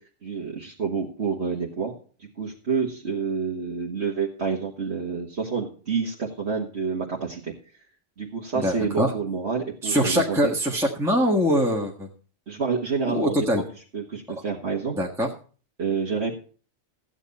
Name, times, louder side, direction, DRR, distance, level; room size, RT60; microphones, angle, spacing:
voice 1, 0.2-1.9 2.2-7.5 8.2-10.5 12.5-13.4 13.9-15.0 15.8-16.3, right 5 dB, 55° right, -3 dB, 1.9 m, -28 dB
voice 2, 8.5-9.1 9.8-12.1 13.1-13.6 15.0-15.3, equal, ahead, -2 dB, 1.5 m, -23 dB
14.5 x 8.8 x 4.2 m, 0.40 s
omnidirectional pair, 1.3 m